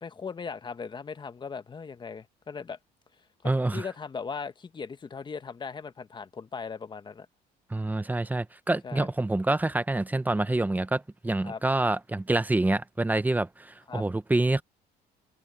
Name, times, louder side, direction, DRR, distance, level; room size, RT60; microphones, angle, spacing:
voice 1, 0.0-2.8 3.4-7.3 8.8-9.1 11.4-11.6 13.9-14.0, left 5 dB, 25° left, 1.2 m, -38 dB
voice 2, 3.4-3.8 7.7-14.6, right 2 dB, 10° right, 0.8 m, -27 dB
cardioid pair, 110°, 17 cm